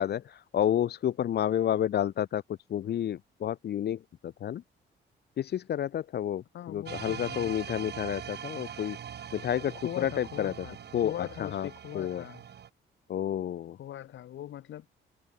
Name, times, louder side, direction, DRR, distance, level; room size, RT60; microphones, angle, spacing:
voice 1, 0.0-2.4 2.7-4.0 4.4-4.6 5.4-9.0 9.3-9.7 10.0-10.5 10.9-11.1 11.4-11.7 11.9-12.2 13.1-13.8, left 10 dB, 55° left, 0.7 m, -30 dB
voice 2, 6.5-7.5 9.8-10.8 11.0-12.4 13.7-14.9, left 12 dB, 70° left, 1.8 m, -41 dB
sound 1, 6.9-12.7, right 8 dB, 55° right, 4.1 m, -42 dB
cardioid pair, 90°, 20 cm